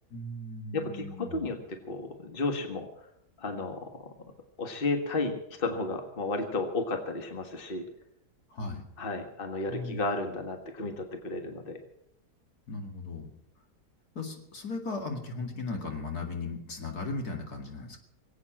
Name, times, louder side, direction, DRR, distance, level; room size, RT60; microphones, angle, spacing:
voice 1, 0.1-1.5 8.5-8.8 9.7-10.0 12.7-13.3 14.1-18.0, left 3 dB, 70° left, 3 dB, 2.9 m, -37 dB
voice 2, 0.7-3.1 3.4-4.1 4.6-7.9 9.0-11.8, left 3 dB, 35° left, 5 dB, 1.8 m, -33 dB
22.0 x 8.7 x 7.5 m, 0.77 s
omnidirectional pair, 1.7 m